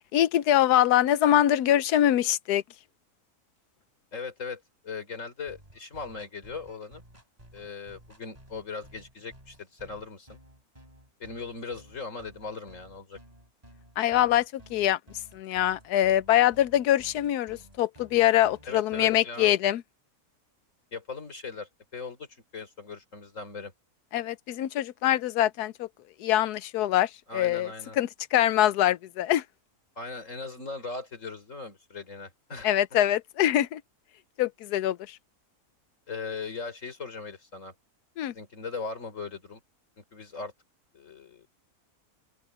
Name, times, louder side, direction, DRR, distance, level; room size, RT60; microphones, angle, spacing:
voice 1, 0.1-2.6 14.0-15.0 15.3-19.8 24.1-25.9 26.2-29.4 32.6-33.8 34.4-35.2 38.2-38.3, left 12 dB, 85° left, 1.2 m, -24 dB
voice 2, 4.1-7.0 7.5-10.4 11.2-13.2 18.7-19.5 20.9-23.7 27.3-28.0 30.0-32.7 36.1-37.7 38.3-39.6 40.0-40.5 40.9-41.5, left 4 dB, 55° left, 3.8 m, -39 dB
sound 1, 5.5-19.2, right 1 dB, 25° right, 6.2 m, -54 dB
open air
omnidirectional pair, 1.6 m